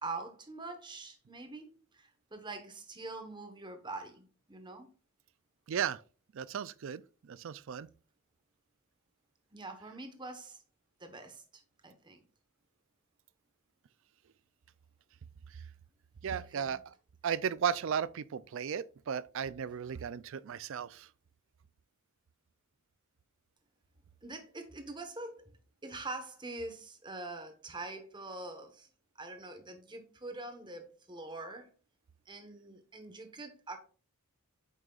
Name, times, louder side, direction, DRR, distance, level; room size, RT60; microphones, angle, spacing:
voice 1, 0.0-4.9 9.5-10.6 11.0-12.2 16.2-16.8 24.2-25.5 25.8-28.9 29.2-31.7 32.3-33.8, right 2 dB, 20° right, 1.1 m, -44 dB
voice 2, 5.7-6.0 6.3-7.9 15.5-15.6 16.2-16.9 17.2-21.1, right 7 dB, 60° right, 0.4 m, -35 dB
8.9 x 6.3 x 2.4 m
head